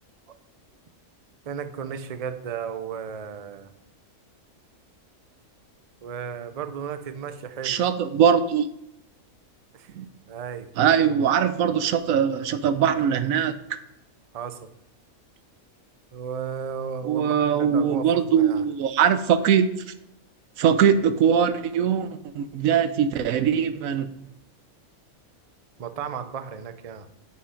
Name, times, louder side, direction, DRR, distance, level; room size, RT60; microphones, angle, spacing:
voice 1, 1.5-3.7 6.0-7.8 9.7-9.9 10.3-10.7 13.4-13.5 14.3-14.7 16.1-18.6 25.8-27.1, right 7 dB, 40° right, 10 dB, 0.5 m, -34 dB
voice 2, 7.6-8.7 9.9-10.0 10.8-13.8 17.0-19.7 20.6-24.1, right 8 dB, 90° right, 12 dB, 1.1 m, -21 dB
9.4 x 5.5 x 5.1 m, 0.83 s
omnidirectional pair, 1.4 m